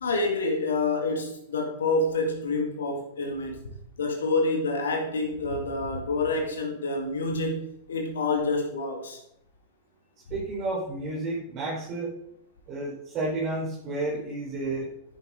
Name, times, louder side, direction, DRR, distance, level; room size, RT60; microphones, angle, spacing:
voice 1, 0.0-3.6 4.0-9.2, left 3 dB, 65° left, 2 dB, 2.3 m, -27 dB
voice 2, 10.3-12.1 12.7-14.9, right 2 dB, 40° right, -6 dB, 4.7 m, -31 dB
11.5 x 9.9 x 3.9 m, 0.73 s
figure-of-eight pair, 90°, 0 cm